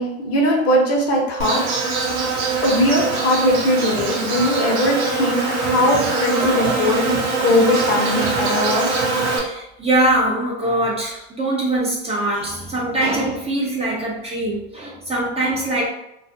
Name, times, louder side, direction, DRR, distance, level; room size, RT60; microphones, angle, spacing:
voice 1, 0.0-1.7 2.6-9.0, left 1 dB, 40° left, -1 dB, 0.8 m, -20 dB
Insect, 1.4-9.4, right 4 dB, 55° right, 0.7 m, -22 dB
voice 2, 9.4-15.9, right 1 dB, 20° right, -4 dB, 0.5 m, -22 dB
2.3 x 2.0 x 2.6 m, 0.82 s
hypercardioid pair, 90°, 35 cm